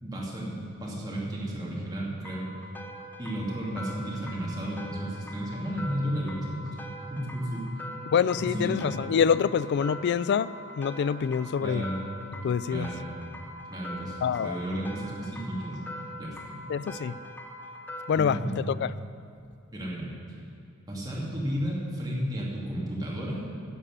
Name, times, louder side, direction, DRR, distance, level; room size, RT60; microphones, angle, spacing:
voice 1, 0.0-2.4 3.2-6.7 7.1-7.7 8.4-9.0 11.6-12.0 12.7-13.1 13.7-16.6 18.1-18.5 19.7-20.1 20.9-23.5, equal, 20° right, -5 dB, 2.3 m, -33 dB
sound 1, 2.2-18.4, equal, 10° left, 0.8 m, -43 dB
voice 2, 8.1-10.5 10.8-11.8 12.4-12.9 14.2-14.6 16.7-17.2 18.1-18.4 18.7-18.9, left 7 dB, 55° left, 17 dB, 0.3 m, -26 dB
11.5 x 7.3 x 6.7 m, 2.5 s
head